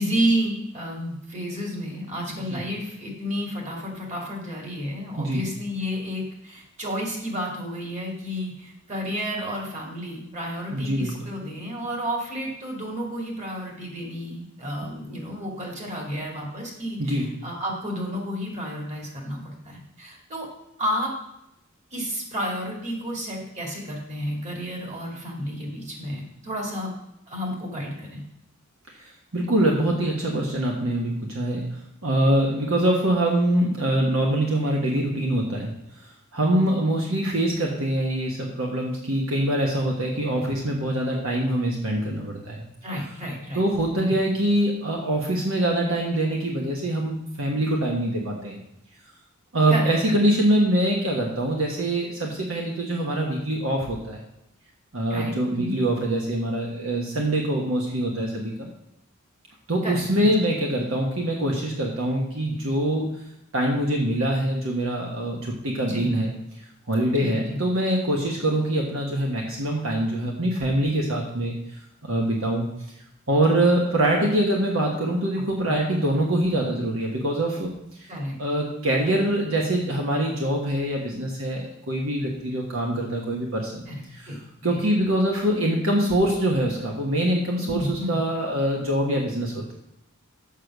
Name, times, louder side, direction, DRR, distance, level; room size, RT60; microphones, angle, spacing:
voice 1, 0.0-20.5 20.8-21.1 21.9-26.9 27.3-28.2 40.3-40.5 42.8-43.6 44.0-44.2 49.7-49.9 55.1-55.8 59.8-60.3 65.8-66.1 67.1-67.6 75.6-75.8 76.2-76.3 78.1-78.4 83.9-84.8 87.7-88.2, equal, 35° right, -1 dB, 2.4 m, -31 dB
voice 2, 2.3-2.6 5.2-5.4 10.7-11.1 17.0-17.3 29.3-31.6 32.0-35.7 36.3-42.6 43.5-48.6 49.5-54.2 54.9-58.7 59.7-63.1 63.5-66.3 66.9-71.5 72.0-72.6 73.3-77.7 78.4-83.8 84.2-84.4 84.6-89.7, right 1 dB, 65° right, -1 dB, 1.4 m, -24 dB
7.4 x 6.6 x 6.0 m, 0.81 s
head